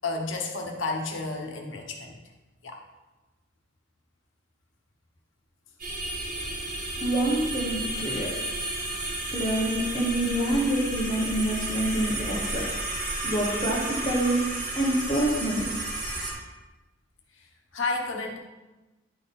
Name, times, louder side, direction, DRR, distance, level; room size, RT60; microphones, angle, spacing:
voice 1, 0.0-2.2 2.6-2.8 17.7-18.4, left 3 dB, 75° left, 2 dB, 1.1 m, -31 dB
sound 1, 5.8-16.3, right 2 dB, 45° right, 2.1 m, -32 dB
voice 2, 7.0-8.3 9.3-12.7 13.2-14.4 14.7-15.7, right 1 dB, 25° left, -6 dB, 1.1 m, -26 dB
11.0 x 3.6 x 4.2 m, 1.1 s
head